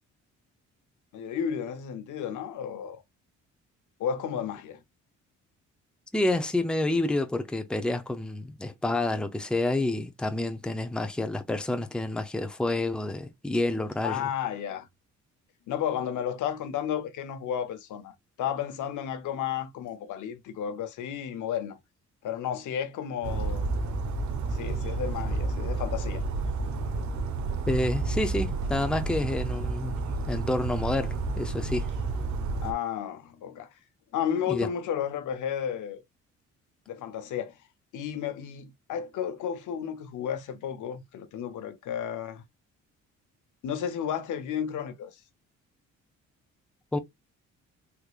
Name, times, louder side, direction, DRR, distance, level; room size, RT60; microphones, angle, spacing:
voice 1, 1.1-3.0 4.0-4.8 14.0-14.9 15.7-21.8 22.2-23.7 24.5-26.2 32.6-33.7 34.1-36.0 36.9-37.6 37.9-42.4 43.6-45.2, left 9 dB, 80° left, 0.9 m, -32 dB
voice 2, 6.1-14.2 27.7-30.0 30.3-31.9 34.5-34.7 46.9-47.0, left 2 dB, 5° left, 0.6 m, -29 dB
Bird vocalization bird call bird song, 23.2-32.7, right 3 dB, 70° right, 0.9 m, -30 dB
3.6 x 3.1 x 2.4 m
cardioid pair, 90°, 30 cm